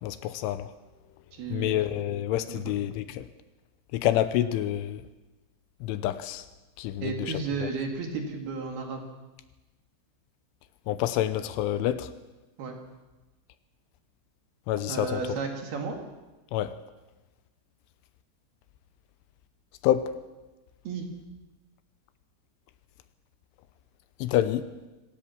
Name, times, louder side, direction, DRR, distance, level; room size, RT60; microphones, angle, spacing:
voice 1, 0.0-0.7 1.5-3.3 3.9-5.0 5.8-6.4 6.8-7.3 7.6-7.7 10.9-12.1 14.7-15.2 16.5-16.7 19.8-20.1 24.2-24.6, left 12 dB, 80° left, 12 dB, 3.2 m, -27 dB
voice 2, 1.3-1.9 2.5-2.7 7.0-9.0 12.6-12.7 14.9-16.0 20.9-21.1, right 4 dB, 55° right, 3 dB, 3.9 m, -33 dB
26.5 x 16.5 x 7.2 m, 1.1 s
omnidirectional pair, 5.7 m